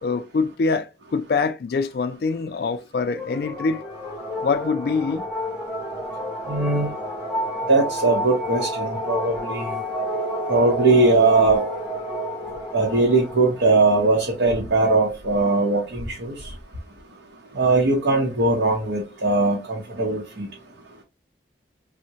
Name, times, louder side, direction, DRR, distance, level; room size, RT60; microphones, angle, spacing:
voice 1, 0.0-3.8 4.4-5.2, left 4 dB, 55° left, 0.3 m, -24 dB
sound 1, 3.1-15.0, equal, 5° right, 0.7 m, -30 dB
voice 2, 6.5-6.9 7.7-9.7 10.5-11.6 12.7-16.3 17.6-20.5, right 3 dB, 80° right, 0.7 m, -20 dB
3.5 x 2.1 x 2.7 m
head